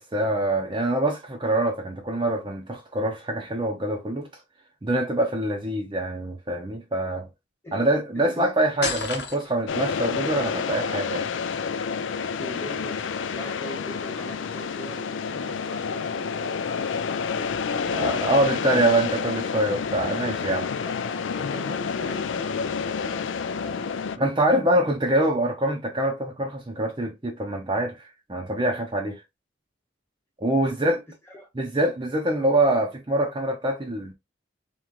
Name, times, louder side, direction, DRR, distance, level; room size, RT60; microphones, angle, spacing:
voice 1, 0.0-4.3 4.8-7.3 7.7-11.3 17.9-20.7 24.2-29.2 30.4-31.0 31.6-34.1, right 1 dB, 25° right, 0.6 m, -25 dB
voice 2, 8.1-8.5 12.4-18.0 20.8-24.3 30.6-31.0 31.3-31.5 32.3-32.5, equal, 10° left, 1.1 m, -41 dB
sound 1, 8.8-9.8, left 5 dB, 55° left, 0.9 m, -30 dB
sound 2, 9.7-24.2, left 6 dB, 75° left, 0.4 m, -29 dB
3.6 x 3.0 x 3.0 m
head